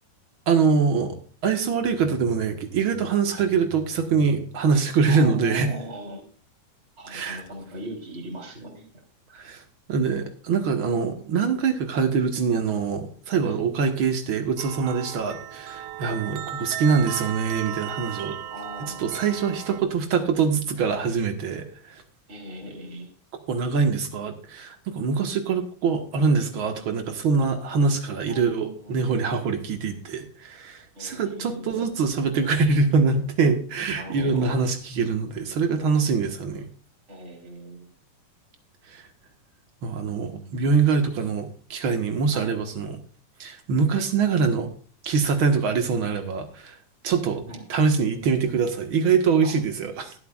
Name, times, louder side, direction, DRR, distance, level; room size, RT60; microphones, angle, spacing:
voice 1, 0.5-5.7 7.1-7.4 9.3-9.6 9.9-18.4 18.8-22.0 23.5-36.7 38.9-39.0 39.8-43.0 43.4-44.7 45.0-46.8 47.0-47.4 47.7-50.1, right 5 dB, 55° right, 6 dB, 1.7 m, -24 dB
voice 2, 5.1-6.2 7.0-8.9 9.3-9.4 13.4-13.6 18.5-19.2 22.3-23.1 28.3-28.9 30.9-31.8 33.9-34.5 37.1-37.9 42.3-42.5 47.5-47.6 49.4-49.5, right 1 dB, 20° right, 0 dB, 3.5 m, -39 dB
sound 1, 14.6-19.8, right 11 dB, 90° right, 1.3 m, -36 dB
21.5 x 8.0 x 2.4 m, 0.43 s
omnidirectional pair, 3.7 m